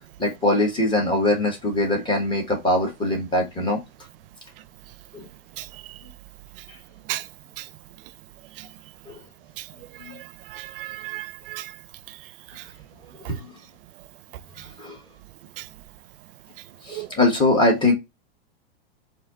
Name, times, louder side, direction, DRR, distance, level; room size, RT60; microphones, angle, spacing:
voice 1, 0.2-3.8 5.1-5.3 9.1-9.2 13.2-13.4 14.8-15.0 16.9-17.9, left 2 dB, 15° left, 1.5 m, -22 dB
voice 2, 10.5-11.6 16.9-17.1, right 16 dB, 65° right, 0.5 m, -33 dB
4.2 x 2.9 x 3.7 m
supercardioid pair, 130°, 31 cm